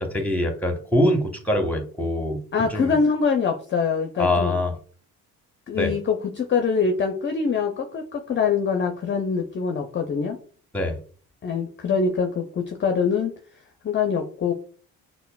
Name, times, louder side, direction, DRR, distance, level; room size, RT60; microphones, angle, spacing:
voice 1, 0.0-2.4 2.7-3.0 4.2-4.7 5.7-5.9 10.7-11.0, left 1 dB, 5° left, 5 dB, 0.9 m, -23 dB
voice 2, 2.5-4.5 5.7-10.4 11.4-13.3 13.8-14.5, left 5 dB, 30° left, 4 dB, 0.5 m, -24 dB
5.5 x 2.1 x 2.3 m, 0.44 s
hypercardioid pair, 60°, 40 cm